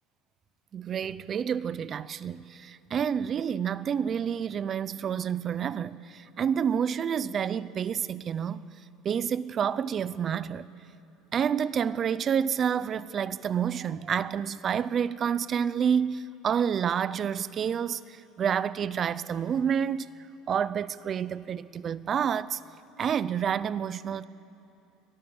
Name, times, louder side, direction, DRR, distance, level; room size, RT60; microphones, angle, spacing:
voice 1, 0.7-8.7 9.0-10.7 11.3-20.1 20.5-22.6 23.0-24.2, right 8 dB, 25° right, 0.5 m, -29 dB
24.0 x 18.0 x 7.0 m
cardioid pair, 165°, 0 cm